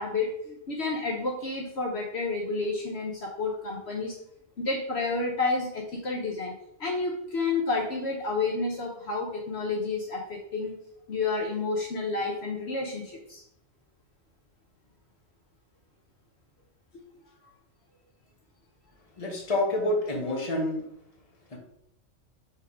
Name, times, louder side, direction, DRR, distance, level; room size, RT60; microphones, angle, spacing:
voice 1, 0.0-4.2 4.6-6.5 6.8-10.7 11.1-13.4 16.9-17.0, left 3 dB, 60° left, 0 dB, 1.1 m, -30 dB
voice 2, 19.2-20.8 21.5-21.6, left 1 dB, 30° left, -1 dB, 1.3 m, -28 dB
5.7 x 3.7 x 4.8 m, 0.74 s
omnidirectional pair, 1.3 m